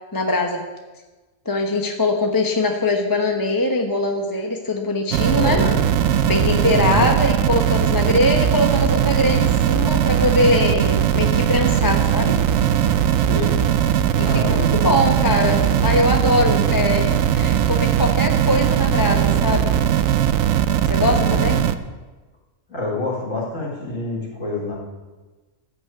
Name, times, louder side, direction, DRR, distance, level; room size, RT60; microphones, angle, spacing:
voice 1, 0.1-0.6 1.4-5.6 6.2-12.4 14.1-19.7 20.9-21.6, left 1 dB, 15° left, 2 dB, 1.0 m, -22 dB
sound 1, 5.1-21.7, right 9 dB, 80° right, 1.0 m, -19 dB
voice 2, 5.3-5.7 6.8-7.2 13.2-13.6 14.2-14.7 21.2-21.7 22.7-24.7, left 2 dB, 75° left, -6 dB, 4.4 m, -27 dB
14.5 x 6.3 x 8.6 m, 1.2 s
omnidirectional pair, 1.4 m